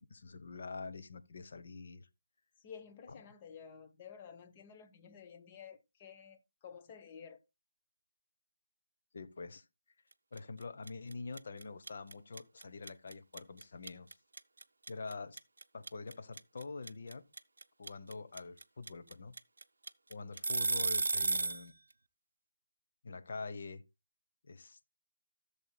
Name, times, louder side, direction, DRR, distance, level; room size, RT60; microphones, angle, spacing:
voice 1, 0.0-2.1 3.1-3.2 9.1-9.6 10.3-14.2 14.9-15.4 15.7-17.2 17.8-19.3 20.1-21.8 23.0-23.8 24.4-24.9, left 4 dB, 50° left, 1.0 m, -45 dB
voice 2, 2.6-7.4, left 7 dB, 25° left, 1.0 m, -52 dB
sound 1, 10.4-10.6 10.9-21.6, right 3 dB, 70° right, 0.6 m, -33 dB
15.0 x 7.1 x 2.3 m
figure-of-eight pair, 155°, 0 cm